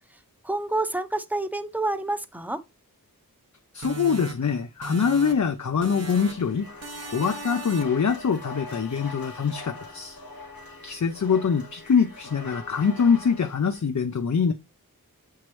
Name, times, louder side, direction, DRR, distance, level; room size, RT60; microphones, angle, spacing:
voice 1, 0.4-2.6, right 2 dB, 5° right, 0.8 m, -28 dB
voice 2, 3.7-6.7 7.1-10.2 10.8-14.5, left 6 dB, 55° left, 0.6 m, -24 dB
sound 1, 3.8-5.5 5.8-6.5 6.8-8.1, right 3 dB, 50° right, 0.9 m, -38 dB
sound 2, 6.0-13.8, left 2 dB, 85° left, 1.9 m, -42 dB
7.2 x 4.6 x 3.1 m
wide cardioid pair, 60°, 35 cm